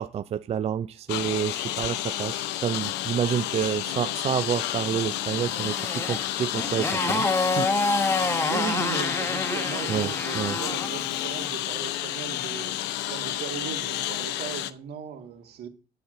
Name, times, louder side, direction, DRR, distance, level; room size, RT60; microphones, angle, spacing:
voice 1, 0.0-7.7 9.9-10.6, right 9 dB, 40° right, 0.4 m, -29 dB
Engine, 1.1-14.7, left 14 dB, 90° left, 0.7 m, -31 dB
Motorcycle, 4.9-11.0, left 3 dB, 15° left, 1.3 m, -28 dB
Wind instrument woodwind instrument, 6.9-11.5, left 11 dB, 50° left, 1.0 m, -40 dB
voice 2, 8.5-15.7, right 7 dB, 70° right, 2.0 m, -37 dB
10.0 x 4.2 x 7.7 m
cardioid pair, 110°, 17 cm